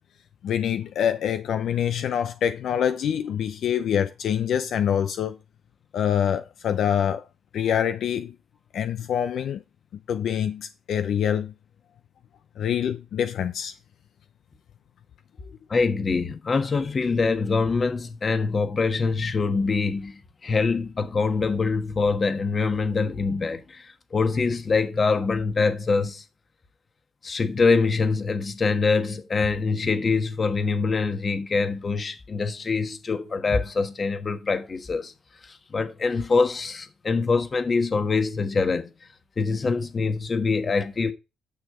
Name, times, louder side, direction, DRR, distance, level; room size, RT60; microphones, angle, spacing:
voice 1, 0.4-5.4 5.9-7.2 7.5-8.3 8.7-9.6 10.1-11.5 12.6-13.7, left 9 dB, 70° left, 0.6 m, -25 dB
voice 2, 15.7-26.2 27.2-35.1 35.4-38.9 39.4-41.1, left 4 dB, 35° left, 1.4 m, -24 dB
9.5 x 6.4 x 3.7 m
cardioid pair, 90°, 0 cm